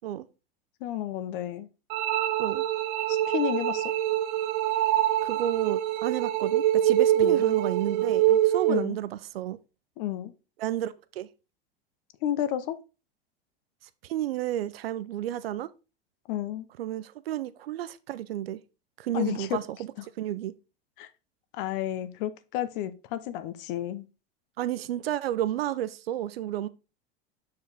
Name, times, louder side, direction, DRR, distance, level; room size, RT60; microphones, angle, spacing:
voice 1, 0.8-1.7 3.1-3.9 7.1-7.5 8.3-8.4 8.7-9.0 10.0-10.3 12.2-12.8 16.3-16.7 19.1-19.6 21.0-21.1 21.5-24.1, left 12 dB, 65° left, 0.8 m, -31 dB
sound 1, 1.9-8.9, right 12 dB, 60° right, 0.8 m, -25 dB
voice 2, 5.2-9.6 10.6-11.3 14.0-15.7 16.8-18.6 19.0-19.9 20.2-20.5 24.6-26.7, right 12 dB, 85° right, 0.5 m, -31 dB
6.6 x 4.8 x 3.4 m
hypercardioid pair, 95°, 29 cm